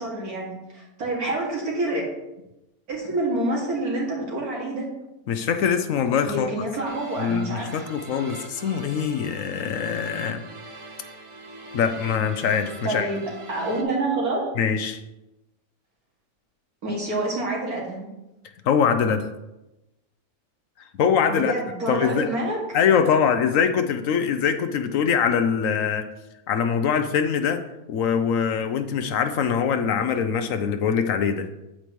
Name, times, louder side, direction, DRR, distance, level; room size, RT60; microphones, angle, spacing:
voice 1, 0.0-2.1 2.9-4.9 6.3-7.8 12.8-13.2 13.5-14.5 16.8-18.1 21.3-22.8, right 2 dB, 70° right, -3 dB, 2.6 m, -27 dB
voice 2, 5.3-6.5 7.2-10.4 11.7-13.1 14.6-15.0 18.7-19.3 21.0-21.5 21.9-22.3 22.7-26.0 26.5-27.6 27.9-31.5, left 7 dB, 70° left, 9 dB, 0.9 m, -23 dB
sound 1, 6.8-13.8, right 2 dB, 35° right, 0.5 m, -42 dB
8.6 x 8.2 x 3.0 m, 0.95 s
omnidirectional pair, 1.6 m